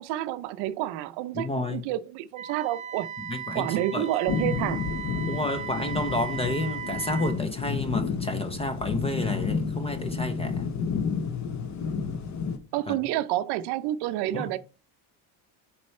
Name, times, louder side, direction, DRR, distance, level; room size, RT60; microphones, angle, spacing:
voice 1, 0.0-3.1 3.5-4.9 12.7-14.6, right 14 dB, 60° right, 0.6 m, -29 dB
voice 2, 1.3-1.8 3.2-4.1 5.2-10.7 12.9-13.0 14.3-14.6, left 2 dB, 15° left, 0.4 m, -31 dB
Wind instrument woodwind instrument, 2.3-7.4, right 8 dB, 15° right, 1.1 m, -37 dB
sound 1, 4.3-12.6, left 5 dB, 40° left, 0.8 m, -30 dB
6.2 x 4.6 x 4.3 m
cardioid pair, 150°, 44 cm